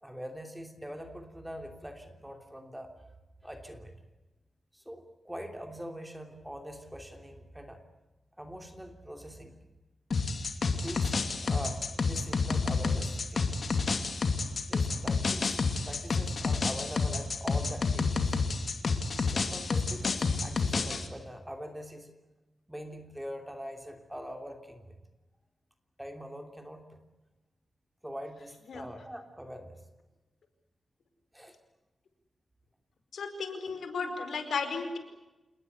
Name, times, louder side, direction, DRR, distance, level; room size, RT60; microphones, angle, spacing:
voice 1, 0.0-2.9 3.4-3.9 4.7-7.8 8.4-9.6 10.7-13.5 14.7-18.4 19.2-22.1 22.7-24.9 26.0-27.0 28.0-29.8 31.3-31.5, equal, 5° right, 5 dB, 3.1 m, -43 dB
sound 1, 10.1-21.1, left 4 dB, 50° left, 2.7 m, -29 dB
voice 2, 33.1-35.0, left 5 dB, 80° left, 8 dB, 4.8 m, -34 dB
28.5 x 20.5 x 8.3 m, 1.1 s
wide cardioid pair, 135°, 0 cm